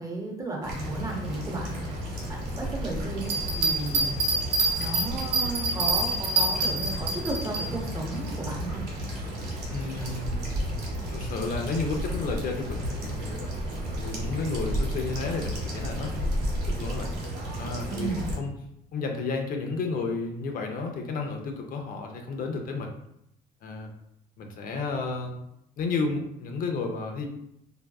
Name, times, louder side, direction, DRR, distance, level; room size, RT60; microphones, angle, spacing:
voice 1, 0.0-4.2 4.8-8.9 17.8-18.3, right 2 dB, 20° right, -1 dB, 0.6 m, -34 dB
sound 1, 0.6-18.4, equal, 65° right, 1.3 m, -33 dB
Bell, 3.2-7.6 8.1-8.2, right 2 dB, 85° right, 0.8 m, -26 dB
voice 2, 9.7-10.4 11.1-13.4 14.0-16.3 16.7-17.1 17.6-18.5 18.9-22.9 23.6-23.9 24.4-25.5 25.8-27.3, left 3 dB, 55° left, 3 dB, 0.4 m, -32 dB
2.5 x 2.2 x 2.2 m, 0.78 s
cardioid pair, 110°, 17 cm